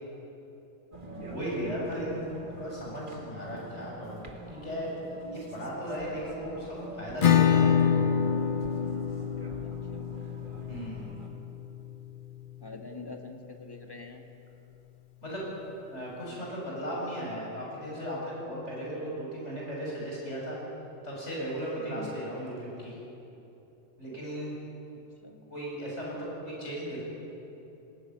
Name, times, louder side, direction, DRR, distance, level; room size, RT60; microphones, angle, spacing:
sound 1, 0.9-11.3, right 2 dB, 45° right, 2.0 m, -45 dB
voice 1, 1.2-2.2 2.6-4.9 5.3-8.1 10.7-11.2 15.2-15.5 15.9-20.6 21.0-23.0 24.0-24.5 25.5-27.0, equal, 70° left, -4 dB, 7.5 m, -36 dB
Acoustic guitar / Strum, 7.2-12.6, left 8 dB, 45° left, 0.9 m, -27 dB
voice 2, 9.6-10.1 12.6-14.2 21.8-22.1 25.2-25.5, left 3 dB, 20° left, 2 dB, 1.9 m, -45 dB
20.0 x 16.5 x 9.5 m, 3.0 s
omnidirectional pair, 1.2 m